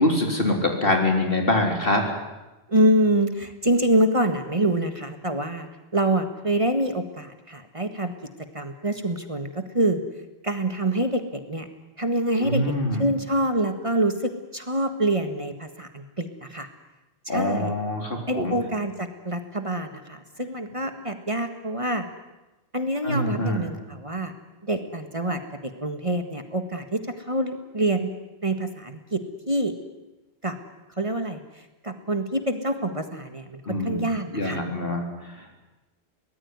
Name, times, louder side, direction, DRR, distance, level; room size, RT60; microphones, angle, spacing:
voice 1, 0.0-2.0 12.4-13.1 17.3-18.5 23.0-23.7 33.7-34.0 34.3-35.6, left 1 dB, 60° left, 2 dB, 4.1 m, -24 dB
voice 2, 2.7-8.1 8.5-10.0 10.4-11.7 12.0-12.6 13.0-16.7 17.2-17.7 18.3-22.0 22.7-24.3 24.6-28.1 28.4-29.2 29.5-29.7 30.4-30.5 31.0-34.6, right 1 dB, 30° right, 7 dB, 1.7 m, -26 dB
23.0 x 19.0 x 9.6 m, 1.0 s
omnidirectional pair, 1.1 m